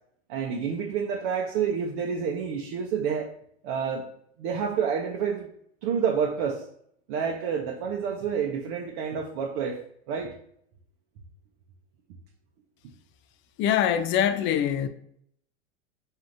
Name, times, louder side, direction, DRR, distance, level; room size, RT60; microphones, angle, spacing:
voice 1, 0.3-3.3 3.6-4.1 4.4-5.5 5.8-6.7 7.1-9.8 10.1-10.3, right 7 dB, 60° right, 0.7 m, -28 dB
voice 2, 13.6-14.9, left 9 dB, 35° left, 0.4 m, -23 dB
5.9 x 2.7 x 2.5 m
hypercardioid pair, 100°, 34 cm